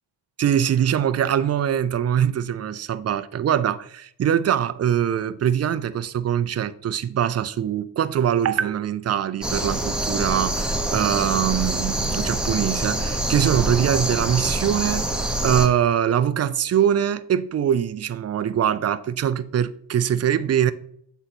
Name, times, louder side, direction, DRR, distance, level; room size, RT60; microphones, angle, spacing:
voice 1, 0.4-15.1 15.4-20.7, right 9 dB, 35° right, 0.4 m, -23 dB
sound 1, 9.4-15.7, right 1 dB, ahead, 0.7 m, -25 dB
7.8 x 3.0 x 4.1 m
cardioid pair, 85°, 47 cm